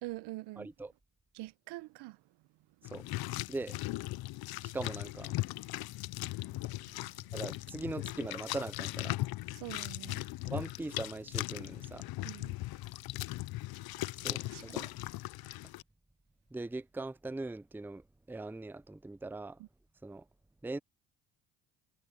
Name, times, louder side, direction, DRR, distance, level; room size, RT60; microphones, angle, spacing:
voice 1, 0.0-0.7 1.3-2.2 6.6-7.2 9.5-10.3 12.2-12.6 14.5-14.9 19.6-19.7, right 19 dB, 70° right, 1.5 m, -45 dB
voice 2, 0.6-0.9 2.9-3.1 3.5-3.8 4.6-5.3 7.3-9.2 10.5-12.1 14.2-15.0 16.5-19.6 20.0-20.2 20.6-20.8, right 2 dB, 5° right, 0.7 m, -41 dB
sound 1, 2.8-15.8, left 18 dB, 60° left, 0.8 m, -38 dB
hypercardioid pair, 60°, 41 cm